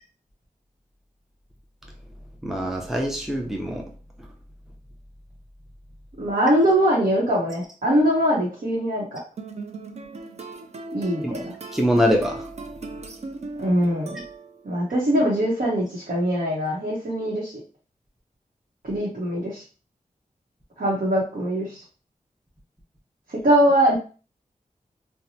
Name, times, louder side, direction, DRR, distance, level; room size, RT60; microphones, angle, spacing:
voice 1, 2.4-3.9 11.2-11.4 11.7-12.5, equal, 5° right, 1 dB, 0.6 m, -23 dB
voice 2, 6.2-9.2 10.9-11.5 13.6-14.2 14.6-17.5 18.8-19.6 20.8-21.8 23.3-24.0, equal, 70° right, -6 dB, 0.9 m, -22 dB
sound 1, 9.4-14.8, right 3 dB, 50° right, 0.4 m, -38 dB
2.9 x 2.1 x 2.7 m, 0.37 s
wide cardioid pair, 95°, 15 cm